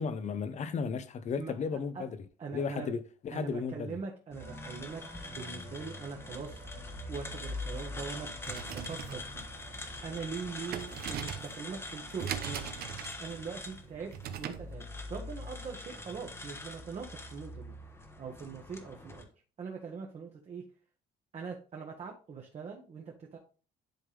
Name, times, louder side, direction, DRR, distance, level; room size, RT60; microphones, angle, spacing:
voice 1, 0.0-2.1 2.5-4.0, left 5 dB, 45° left, 0.8 m, -34 dB
voice 2, 2.4-2.9 3.3-9.4 10.0-12.7 13.2-14.8 15.1-17.7 18.2-19.3 19.6-20.6 21.3-23.4, right 5 dB, 40° right, 1.4 m, -42 dB
sound 1, 4.3-19.2, left 2 dB, 15° left, 1.1 m, -43 dB
sound 2, 4.4-12.9, equal, 80° left, 1.8 m, -55 dB
sound 3, 8.4-14.7, right 9 dB, 70° right, 0.8 m, -41 dB
10.5 x 3.6 x 3.4 m
cardioid pair, 110°, 17 cm